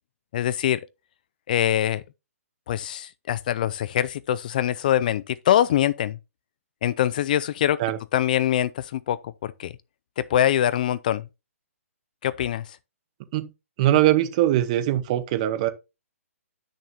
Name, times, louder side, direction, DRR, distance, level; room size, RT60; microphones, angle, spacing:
voice 1, 0.3-0.8 1.5-2.0 2.7-6.2 6.8-7.8 8.1-9.7 10.2-11.2 12.2-12.8, left 11 dB, 35° left, 0.3 m, -23 dB
voice 2, 13.8-15.7, right 13 dB, 30° right, 1.0 m, -21 dB
10.5 x 6.4 x 2.8 m
hypercardioid pair, 160°, 8 cm